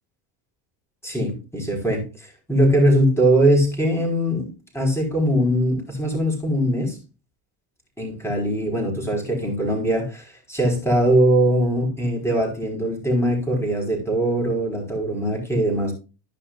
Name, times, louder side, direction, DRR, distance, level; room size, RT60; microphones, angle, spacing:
voice 1, 1.0-2.0 2.5-7.0 8.0-15.9, right 1 dB, 5° left, 4.9 m, -21 dB
15.0 x 5.7 x 2.5 m
supercardioid pair, 105°, 45 cm